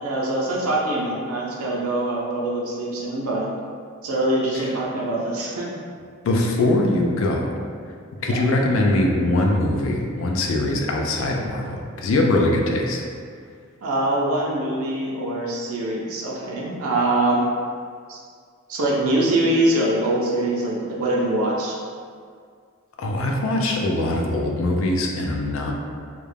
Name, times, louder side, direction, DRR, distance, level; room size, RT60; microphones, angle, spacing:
voice 1, 0.0-3.5 4.0-5.7 8.2-8.4 13.8-17.5 18.1-18.2 18.7-21.8, right 1 dB, 80° right, -4 dB, 0.5 m, -23 dB
voice 2, 6.2-7.6 8.2-13.0 23.0-25.7, left 1 dB, 65° left, 1 dB, 0.3 m, -22 dB
2.3 x 2.1 x 3.2 m, 2.1 s
head